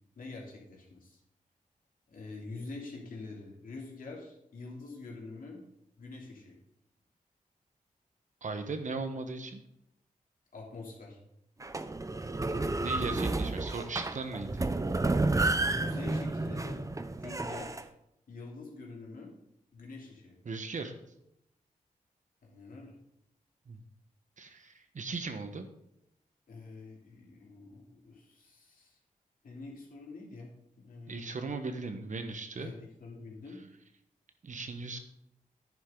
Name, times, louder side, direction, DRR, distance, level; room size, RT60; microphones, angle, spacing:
voice 1, 0.2-1.2 2.1-5.6 6.0-6.6 10.5-11.2 15.7-16.8 17.2-17.8 18.3-19.3 19.7-20.4 22.4-23.0 26.5-29.0 29.4-31.4 32.6-33.6, left 3 dB, 80° left, -2 dB, 3.1 m, -46 dB
voice 2, 8.4-9.6 12.8-14.7 20.4-20.9 23.7-23.8 24.4-25.7 31.1-32.7 34.4-35.0, right 3 dB, 60° right, 7 dB, 1.3 m, -38 dB
sound 1, 11.6-17.8, right 2 dB, 25° right, 0.7 m, -31 dB
10.5 x 10.0 x 3.9 m, 0.80 s
cardioid pair, 70°, 14 cm